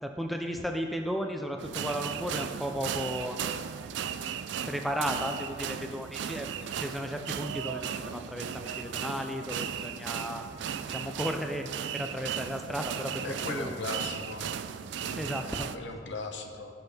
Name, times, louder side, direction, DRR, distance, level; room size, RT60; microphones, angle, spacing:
voice 1, 0.0-3.4 4.7-6.5 6.8-10.4 10.9-11.7 11.9-13.8 15.1-15.7, equal, ahead, 3 dB, 0.4 m, -34 dB
sound 1, 1.6-15.8, right 8 dB, 70° right, 0.3 m, -36 dB
voice 2, 13.2-14.5 15.0-15.2 15.7-16.8, left 3 dB, 75° left, 4 dB, 0.9 m, -38 dB
15.0 x 6.1 x 3.4 m, 2.2 s
head